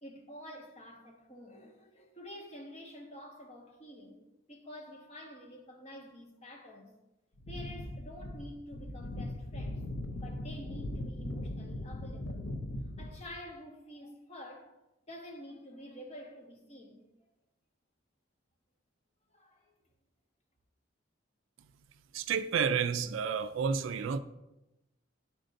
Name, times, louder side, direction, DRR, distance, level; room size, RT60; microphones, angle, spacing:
voice 1, 0.0-4.2 4.5-6.9 7.5-9.8 10.1-12.5 13.0-14.7 15.1-17.1 19.3-19.7, left 1 dB, 30° left, 1.0 m, -48 dB
sound 1, 7.4-13.4, left 1 dB, 60° left, 0.5 m, -39 dB
voice 2, 22.1-24.2, right 6 dB, 65° right, 0.3 m, -30 dB
10.5 x 4.3 x 2.6 m
head